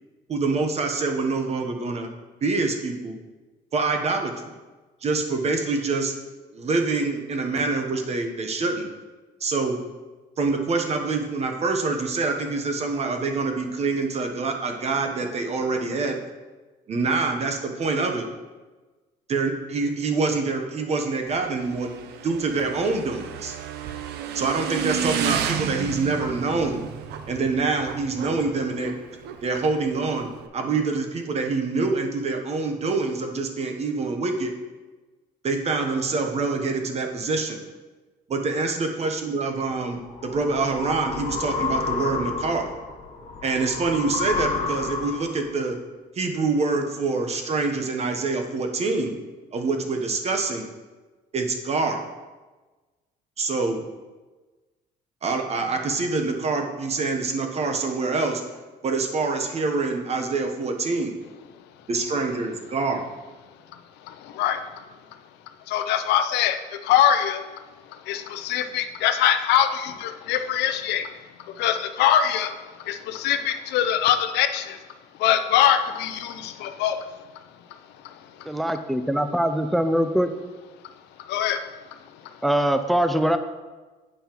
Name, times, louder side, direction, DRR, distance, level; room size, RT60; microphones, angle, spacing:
voice 1, 0.3-2.1 2.4-3.1 3.7-4.5 5.0-6.1 6.5-8.9 9.4-9.8 10.4-16.2 16.9-18.3 19.3-21.9 22.2-23.6 24.3-26.8 27.3-28.9 29.4-30.3 30.5-34.5 35.4-37.6 38.3-42.7 43.4-45.8 46.2-49.1 49.5-50.7 51.3-52.0 53.4-53.8 55.2-58.4 58.8-61.2 61.9-63.0, right 3 dB, 40° right, 4 dB, 0.9 m, -25 dB
Motorcycle / Engine, 21.2-30.5, right 9 dB, 75° right, 0.5 m, -32 dB
sound 1, 39.8-45.5, left 4 dB, 45° left, 1.2 m, -30 dB
voice 2, 64.0-64.8 65.7-67.4 67.9-71.1 71.5-74.8 75.2-77.1 78.0-78.5 81.2-82.4, left 10 dB, 85° left, 9 dB, 0.5 m, -23 dB
voice 3, 78.5-80.3 82.4-83.4, equal, ahead, 9 dB, 0.4 m, -22 dB
8.6 x 5.4 x 3.0 m, 1.3 s
cardioid pair, 110°, 17 cm